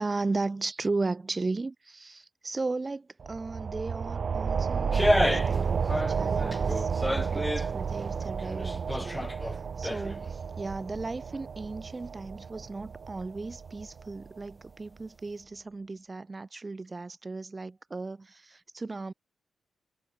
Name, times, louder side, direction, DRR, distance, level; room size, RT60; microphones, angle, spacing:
voice 1, 0.0-19.1, right 3 dB, 30° right, 1.6 m, -36 dB
sound 1, 3.2-14.4, right 6 dB, 60° right, 1.5 m, -32 dB
sound 2, 4.9-5.6 5.9-7.7 8.2-10.3 10.6-10.7, left 1 dB, 10° left, 1.7 m, -30 dB
cardioid pair, 85°, 0 cm